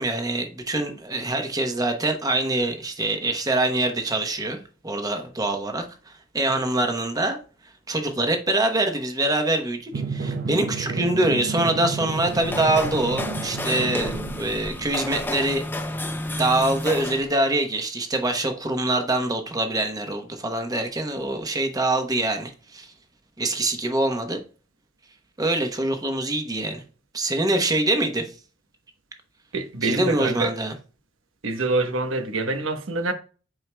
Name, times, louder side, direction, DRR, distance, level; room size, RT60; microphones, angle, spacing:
voice 1, 0.0-7.4 7.9-15.6 16.4-22.9 23.4-24.4 25.4-26.8 27.1-28.3 29.8-30.7, right 2 dB, 20° right, 0.9 m, -24 dB
Drum, 9.9-15.0, right 4 dB, 50° right, 0.5 m, -31 dB
sound 1, 12.0-17.3, left 1 dB, 10° left, 0.5 m, -31 dB
voice 2, 29.5-30.5 31.4-33.1, right 2 dB, 90° right, 1.1 m, -25 dB
8.9 x 4.7 x 2.2 m
head